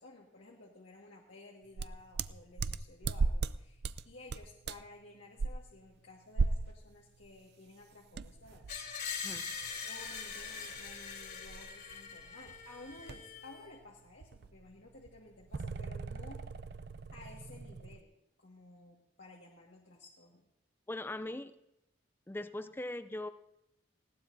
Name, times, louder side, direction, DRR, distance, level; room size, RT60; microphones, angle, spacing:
voice 1, 0.0-9.3 9.8-16.4 17.1-20.4, left 2 dB, 75° left, -3 dB, 1.8 m, -55 dB
sound 1, 1.8-3.6 3.8-4.0 4.3-4.9 5.4-5.5 6.4-6.8 7.2-7.3 8.1-13.4 13.6-13.9 14.2-18.0, right 4 dB, 55° right, 0.4 m, -37 dB
Screech, 8.7-13.6, left 6 dB, 60° left, 3.0 m, -42 dB
voice 2, 9.2-9.6 20.9-21.5 22.3-23.3, left 1 dB, 10° left, 11 dB, 0.4 m, -40 dB
19.5 x 17.5 x 2.7 m, 0.87 s
head